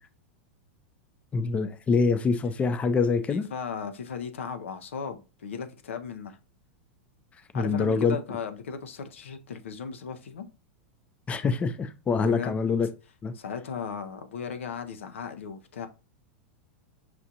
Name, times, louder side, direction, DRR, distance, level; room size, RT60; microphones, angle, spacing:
voice 1, 1.3-3.4 7.5-8.2 11.3-12.9 13.2-13.3, left 4 dB, 20° left, 0.4 m, -25 dB
voice 2, 3.3-6.4 7.5-10.5 12.2-12.6 13.4-15.9, left 6 dB, 90° left, 0.5 m, -36 dB
5.9 x 2.5 x 2.7 m
hypercardioid pair, 115°, 7 cm